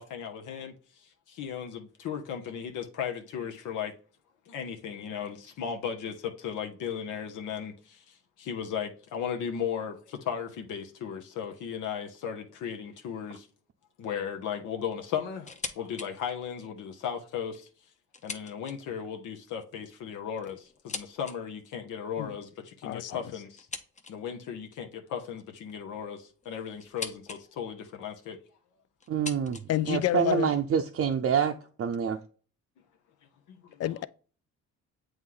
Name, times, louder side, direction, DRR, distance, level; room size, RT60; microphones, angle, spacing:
voice 1, 0.0-3.9 4.5-13.5 14.0-17.7 18.2-23.7 24.1-28.4 33.5-33.9, left 8 dB, 80° left, 0.9 m, -36 dB
sound 1, 15.4-16.1 16.5-16.6 17.4-19.1 20.0-21.4 23.6-24.4 25.6-27.4 27.7-28.3 29.0-30.4, left 4 dB, 25° left, 0.8 m, -42 dB
voice 2, 29.1-29.6 29.9-32.2, right 7 dB, 50° right, 0.6 m, -27 dB
voice 3, 29.7-30.5 33.8-34.1, left 13 dB, 55° left, 0.4 m, -28 dB
7.9 x 3.1 x 3.8 m
cardioid pair, 90°, 30 cm